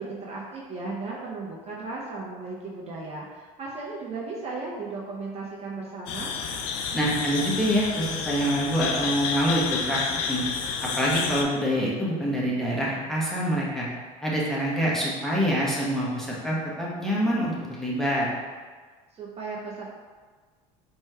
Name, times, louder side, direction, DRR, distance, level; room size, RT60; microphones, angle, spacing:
voice 1, 0.0-6.3 19.1-19.9, right 3 dB, 35° right, -4 dB, 0.7 m, -36 dB
sound 1, 6.1-11.4, left 6 dB, 85° left, 0.4 m, -30 dB
voice 2, 6.9-10.0 10.3-10.4 11.0-13.9 14.2-18.3, equal, ahead, -6 dB, 1.0 m, -26 dB
4.2 x 3.1 x 2.3 m, 1.5 s
supercardioid pair, 90°, 17 cm